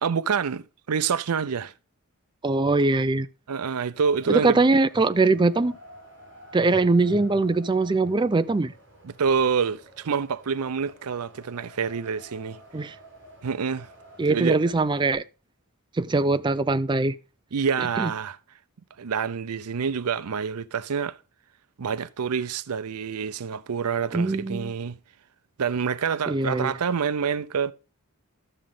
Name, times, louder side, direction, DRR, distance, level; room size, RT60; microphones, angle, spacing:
voice 1, 0.0-1.7 3.5-4.6 9.0-12.9 13.4-13.9 14.3-14.6 17.5-18.4 19.0-21.2 21.8-25.0 25.6-27.7, right 6 dB, 90° right, 0.5 m, -27 dB
voice 2, 2.4-3.3 4.3-5.8 6.5-8.7 12.7-12.9 14.2-15.2 16.0-17.2 18.0-18.1 24.1-24.7 26.3-26.7, right 3 dB, 20° right, 0.4 m, -22 dB
Wind, 3.9-15.1, equal, 55° right, 7.2 m, -49 dB
12.5 x 7.5 x 3.7 m
head